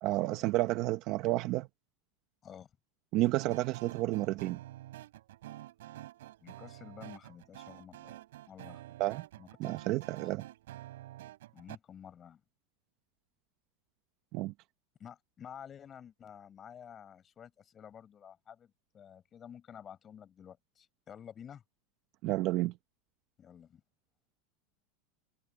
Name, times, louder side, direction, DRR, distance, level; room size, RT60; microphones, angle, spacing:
voice 1, 0.0-1.7 3.1-4.6 9.0-9.3 9.6-10.4 14.3-14.5 22.2-22.7, right 17 dB, 40° right, 0.9 m, -31 dB
sound 1, 3.4-11.8, right 15 dB, 85° right, 7.9 m, -49 dB
voice 2, 6.4-8.2 8.5-8.8 9.4-9.7 10.2-10.3 11.5-12.4 15.0-21.6 23.4-23.8, left 8 dB, 20° left, 7.6 m, -51 dB
supercardioid pair, 165°, 0 cm